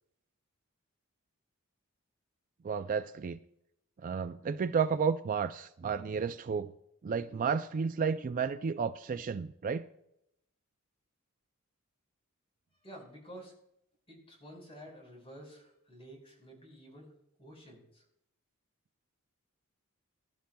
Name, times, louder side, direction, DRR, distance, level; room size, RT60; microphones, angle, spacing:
voice 1, 2.6-3.4 4.0-6.7 7.0-9.9, right 6 dB, 40° right, 0.3 m, -32 dB
voice 2, 12.8-13.5 14.1-17.1 17.4-18.0, equal, 25° left, 4.8 m, -51 dB
22.5 x 11.5 x 2.3 m
head